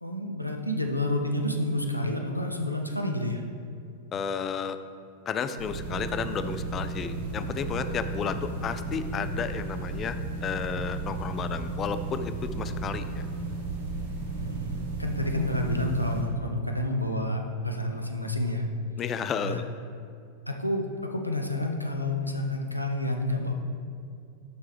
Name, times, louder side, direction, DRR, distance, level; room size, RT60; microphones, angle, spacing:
voice 1, 0.0-3.4 14.4-18.6 19.4-19.6 20.5-23.5, left 1 dB, 90° left, 2 dB, 0.6 m, -29 dB
voice 2, 4.1-4.8 5.3-13.3 19.0-19.6, left 6 dB, 25° left, 11 dB, 0.4 m, -32 dB
sound 1, 5.6-16.2, right 3 dB, 65° right, 1.5 m, -34 dB
12.0 x 4.5 x 3.4 m, 2.4 s
figure-of-eight pair, 90°, 0 cm